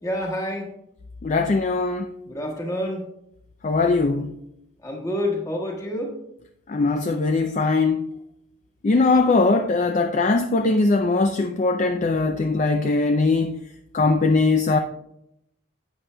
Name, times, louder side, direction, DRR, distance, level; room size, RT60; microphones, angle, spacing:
voice 1, 0.0-0.7 2.2-3.0 4.8-6.1, left 1 dB, 15° left, 1.4 m, -28 dB
voice 2, 1.2-2.1 3.6-4.3 6.7-8.1 8.8-13.6 13.9-14.8, left 3 dB, 35° left, 0.3 m, -20 dB
11.5 x 7.8 x 2.2 m
head